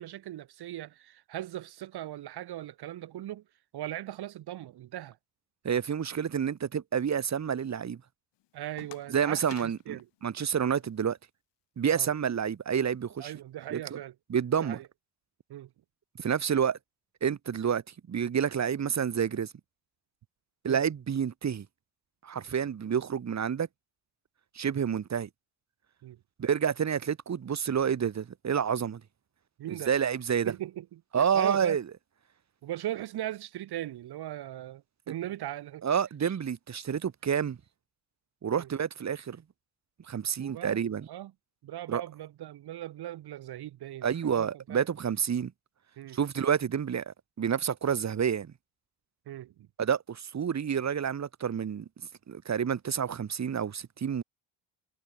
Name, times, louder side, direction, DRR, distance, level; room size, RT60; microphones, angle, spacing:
voice 1, 0.0-3.4 3.7-5.2 8.5-10.1 11.9-12.1 13.2-14.1 14.6-14.8 15.5-15.7 20.7-20.8 26.0-26.2 29.6-29.9 30.4-31.0 31.3-31.8 32.6-35.8 36.2-36.3 38.5-38.7 40.4-40.8 41.1-41.3 41.6-44.8 46.0-46.2 49.3-49.7, right 13 dB, 65° right, 2.0 m, -39 dB
voice 2, 5.6-8.0 9.1-10.0 10.2-11.2 11.8-13.3 13.7-14.0 14.3-14.8 16.2-16.8 17.2-17.8 18.1-19.5 20.6-21.7 22.2-23.7 24.6-25.3 26.4-29.0 29.7-30.5 31.1-31.8 35.8-37.6 38.4-39.4 40.1-41.1 41.9-42.0 44.0-45.5 46.1-48.5 49.8-51.9 52.3-54.2, right 7 dB, 40° right, 1.9 m, -29 dB
sound 1, 8.3-11.1, left 16 dB, 75° left, 4.9 m, -54 dB
supercardioid pair, 70°, 42 cm